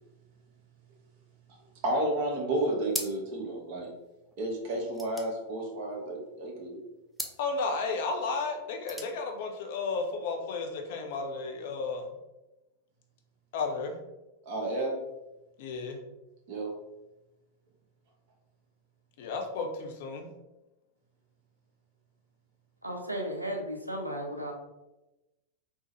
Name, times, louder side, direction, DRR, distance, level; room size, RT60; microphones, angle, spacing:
voice 1, 1.8-3.9 4.4-6.8 14.5-15.0 16.5-16.7, right 1 dB, 45° right, 0 dB, 0.8 m, -31 dB
sound 1, 2.9-3.5 3.8-3.9 4.1-6.3 7.1-7.5 8.6-9.2, equal, ahead, 0.4 m, -39 dB
voice 2, 7.4-12.1 13.5-14.0 15.6-16.0 19.2-20.3, left 4 dB, 50° left, 2 dB, 0.5 m, -33 dB
voice 3, 22.8-24.5, right 1 dB, 85° right, 3 dB, 0.4 m, -34 dB
3.8 x 2.1 x 2.9 m, 0.99 s
figure-of-eight pair, 90°, 0 cm